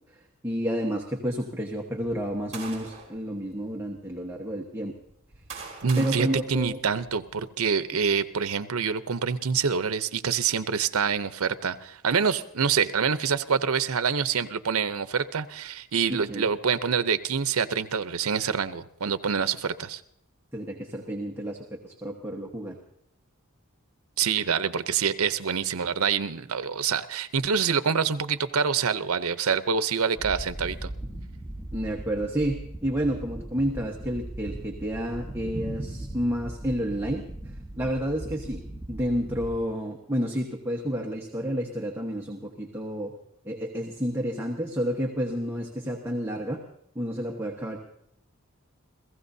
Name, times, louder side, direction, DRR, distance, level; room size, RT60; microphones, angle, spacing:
voice 1, 0.4-4.9 6.0-6.8 16.1-16.4 20.5-22.8 31.7-37.2 37.8-38.6 38.9-43.1 43.4-46.6 46.9-47.8, equal, 10° right, 0 dB, 1.2 m, -30 dB
sound 1, 2.0-3.2 3.9-4.1 5.0-7.3, right 5 dB, 35° right, 4.7 m, -43 dB
voice 2, 5.8-20.0 24.2-30.9, right 6 dB, 80° right, 12 dB, 0.7 m, -26 dB
sound 2, 30.2-39.6, right 1 dB, 5° left, 2.4 m, -38 dB
30.0 x 16.0 x 2.7 m, 0.74 s
head